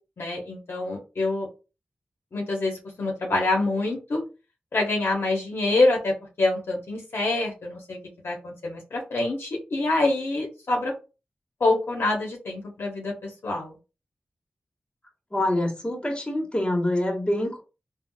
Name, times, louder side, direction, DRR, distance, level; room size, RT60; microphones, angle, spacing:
voice 1, 0.2-1.5 2.3-4.2 4.7-8.0 8.2-10.9 11.6-13.7, left 2 dB, 75° left, 0.9 m, -26 dB
voice 2, 15.3-17.6, left 1 dB, 25° left, 1.3 m, -25 dB
3.7 x 2.3 x 2.2 m
cardioid pair, 45°, 4 cm